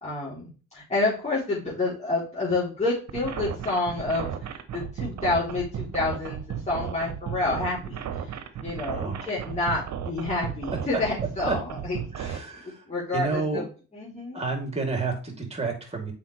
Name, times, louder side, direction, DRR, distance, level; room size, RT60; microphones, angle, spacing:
voice 1, 0.0-6.4 6.7-12.4 12.9-13.7 13.9-14.4, left 2 dB, 20° left, -7 dB, 3.5 m, -29 dB
sound 1, 3.1-12.4, right 8 dB, 60° right, 1.1 m, -34 dB
voice 2, 8.9-9.3 11.5-11.6 12.1-12.8 13.1-13.6 14.3-16.1, right 4 dB, 20° right, 2 dB, 3.1 m, -30 dB
7.2 x 5.1 x 3.3 m, 0.36 s
supercardioid pair, 60°, 32 cm